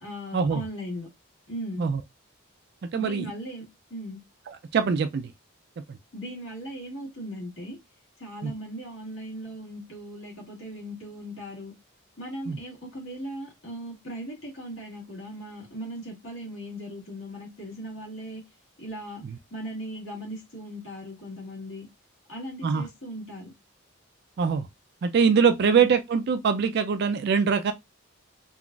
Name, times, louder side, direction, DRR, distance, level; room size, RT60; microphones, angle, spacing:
voice 1, 0.0-1.1 1.5-1.9 2.9-4.2 6.1-7.8 8.2-11.7 12.2-18.4 18.8-19.2 19.5-21.9 22.3-23.5, equal, 65° left, 1.6 m, -38 dB
voice 2, 2.9-3.3 4.7-5.3 5.9-6.0 8.4-8.5 12.5-12.6 22.6-22.9 24.4-24.7 25.0-27.7, right 6 dB, 50° right, 0.3 m, -23 dB
3.7 x 2.4 x 2.3 m
head